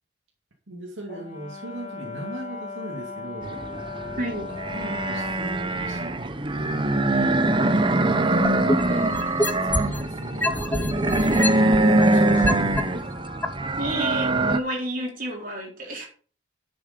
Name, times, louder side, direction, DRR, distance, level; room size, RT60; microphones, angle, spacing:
voice 1, 0.7-4.1 4.5-13.1 15.8-16.0, right 1 dB, 70° right, 0 dB, 2.3 m, -38 dB
Brass instrument, 1.1-5.4, left 4 dB, 35° left, 1.8 m, -37 dB
sound 1, 3.4-14.6, right 2 dB, 25° right, 0.8 m, -23 dB
voice 2, 4.2-4.5 8.7-8.8 13.8-16.1, right 1 dB, 45° right, -1 dB, 4.0 m, -30 dB
sound 2, 8.4-10.0 10.4-12.8 13.4-13.5, left 1 dB, 10° left, 0.7 m, -25 dB
10.5 x 7.1 x 5.2 m, 0.41 s
head